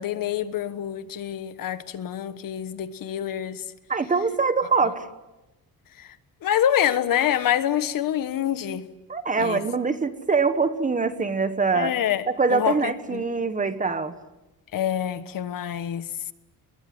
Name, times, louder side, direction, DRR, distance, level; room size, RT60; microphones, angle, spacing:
voice 1, 0.0-3.6 6.0-6.2 6.4-8.9 9.4-9.6 11.7-12.2 12.5-13.3 14.7-16.1, left 10 dB, 65° left, 1.4 m, -26 dB
voice 2, 3.9-5.1 9.1-11.9 12.4-14.1, right 4 dB, 20° right, 1.4 m, -24 dB
30.0 x 21.0 x 8.0 m
cardioid pair, 165°, 35 cm